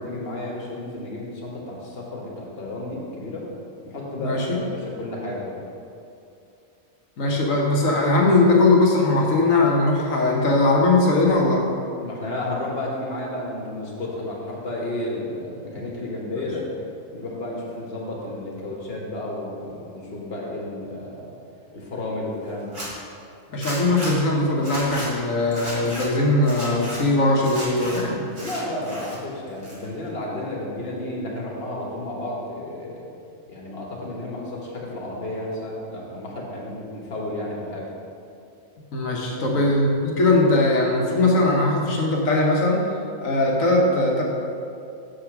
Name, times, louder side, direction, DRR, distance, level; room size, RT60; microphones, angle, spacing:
voice 1, 0.0-3.5 3.8-5.6 7.7-7.8 12.0-16.7 17.1-21.3 21.7-22.8 28.4-33.1 33.5-37.9 39.4-39.6, left 1 dB, 45° left, -3 dB, 1.6 m, -32 dB
voice 2, 4.2-4.6 7.2-11.6 23.5-28.2 38.9-42.8 43.2-44.2, left 2 dB, 70° left, -1 dB, 1.6 m, -20 dB
Zipper (clothing), 22.6-22.9 23.6-24.1 24.6-25.1 25.5-26.1 26.4-27.0 27.4-28.0 28.3-29.2 29.5-30.1, equal, 35° right, 2.0 m, -34 dB
6.9 x 5.2 x 5.9 m, 2.6 s
omnidirectional pair, 1.5 m